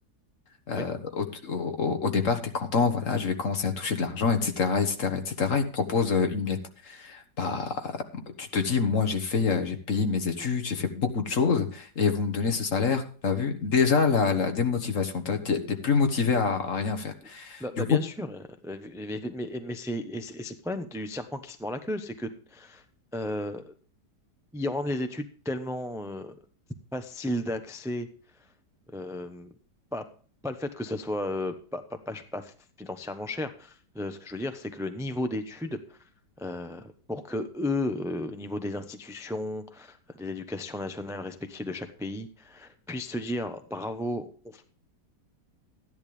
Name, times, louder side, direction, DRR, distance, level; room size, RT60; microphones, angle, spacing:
voice 1, 0.7-17.6 17.9-18.0, left 5 dB, 50° left, 6 dB, 1.7 m, -26 dB
voice 2, 17.6-22.8 23.1-23.7 24.5-26.3 26.9-28.1 28.9-29.5 29.9-30.0 30.4-36.0 36.4-44.6, left 1 dB, 5° right, 8 dB, 0.5 m, -34 dB
14.0 x 10.5 x 3.3 m, 0.40 s
omnidirectional pair, 1.8 m